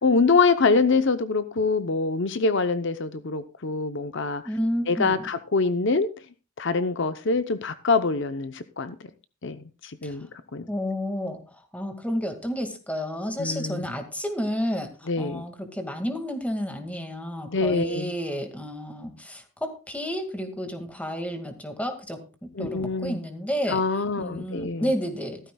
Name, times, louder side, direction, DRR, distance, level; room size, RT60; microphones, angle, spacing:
voice 1, 0.0-4.4 4.9-6.1 6.6-9.0 9.4-10.3 10.5-10.7 13.4-13.9 15.1-15.4 17.5-18.1 22.6-23.2 23.7-24.9, left 4 dB, 60° left, 11 dB, 0.8 m, -24 dB
voice 2, 4.5-5.3 10.0-10.1 10.7-11.4 11.7-14.9 15.2-23.8 24.2-25.4, equal, 5° left, 6 dB, 2.0 m, -31 dB
15.5 x 13.5 x 2.3 m, 0.33 s
head